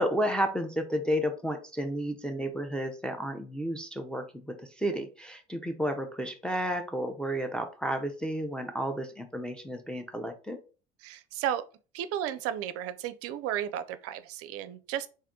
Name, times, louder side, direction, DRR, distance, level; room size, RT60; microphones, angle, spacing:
voice 1, 0.0-10.6, equal, 5° left, 0.5 m, -32 dB
voice 2, 11.0-11.6 11.9-15.1, right 10 dB, 50° right, 0.5 m, -33 dB
3.4 x 2.6 x 3.7 m
hypercardioid pair, 65°, 31 cm